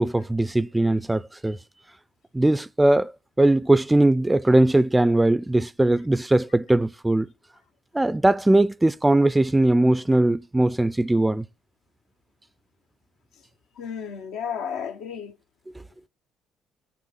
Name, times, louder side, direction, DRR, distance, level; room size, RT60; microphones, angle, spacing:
voice 1, 0.0-1.6 2.3-3.1 3.4-7.3 7.9-11.5, right 1 dB, 15° right, 0.5 m, -20 dB
voice 2, 13.8-15.4, left 7 dB, 70° left, 1.0 m, -33 dB
7.3 x 6.6 x 7.3 m
hypercardioid pair, 50°, 0 cm